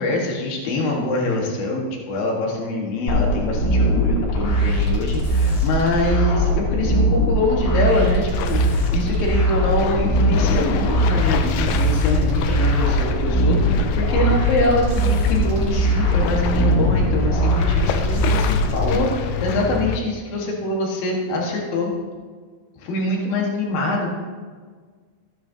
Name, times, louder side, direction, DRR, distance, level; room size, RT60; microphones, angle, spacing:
voice 1, 0.0-21.9 22.8-24.1, left 2 dB, 60° left, -1 dB, 3.2 m, -24 dB
sound 1, 3.1-19.0, right 1 dB, 45° left, 4.0 m, -20 dB
sound 2, 8.3-20.0, left 6 dB, 80° left, 2.3 m, -27 dB
14.5 x 10.5 x 2.9 m, 1.6 s
omnidirectional pair, 5.0 m